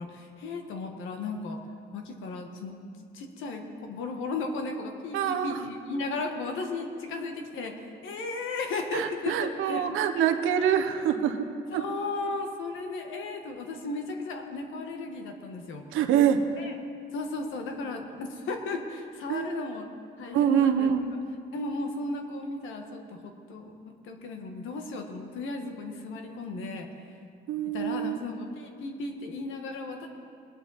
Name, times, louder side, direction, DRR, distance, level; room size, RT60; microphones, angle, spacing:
voice 1, 0.0-1.6 1.9-2.8 3.1-9.9 10.6-10.7 11.7-15.8 16.6-16.7 17.1-19.9 20.2-20.9 21.5-26.9 27.6-30.1, left 3 dB, 85° left, 4 dB, 1.4 m, -35 dB
voice 2, 5.1-5.6 8.9-11.5 11.7-11.8 15.9-16.4 19.3-19.6 20.3-21.1 27.5-28.2, right 9 dB, 90° right, 6 dB, 0.9 m, -25 dB
20.0 x 10.0 x 4.1 m, 2.4 s
cardioid pair, 90°, 20 cm